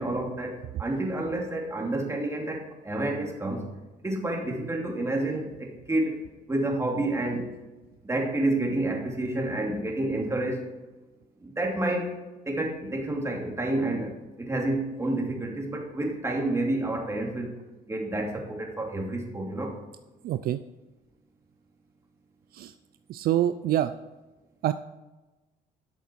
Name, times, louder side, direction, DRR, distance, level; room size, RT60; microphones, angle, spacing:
voice 1, 0.0-3.7 4.0-6.2 6.5-7.5 8.0-10.7 11.4-12.1 12.5-17.5 17.9-19.7, right 1 dB, 15° right, 0 dB, 2.7 m, -29 dB
voice 2, 20.2-20.6 22.5-22.7 23.1-23.9 24.6-24.7, right 12 dB, 60° right, 11 dB, 0.5 m, -25 dB
12.5 x 6.9 x 4.5 m, 1.1 s
cardioid pair, 110°, 17 cm